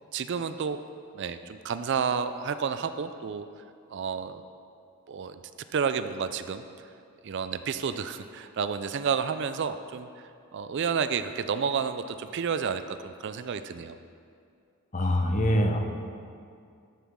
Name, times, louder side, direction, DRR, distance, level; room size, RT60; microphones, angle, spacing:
voice 1, 0.1-0.8 1.1-3.5 3.9-4.4 5.1-5.4 5.7-6.9 7.2-10.1 10.5-14.0, right 6 dB, 55° right, 10 dB, 0.4 m, -30 dB
voice 2, 14.9-15.8, equal, 35° left, 3 dB, 0.8 m, -24 dB
13.5 x 7.1 x 3.7 m, 2.3 s
head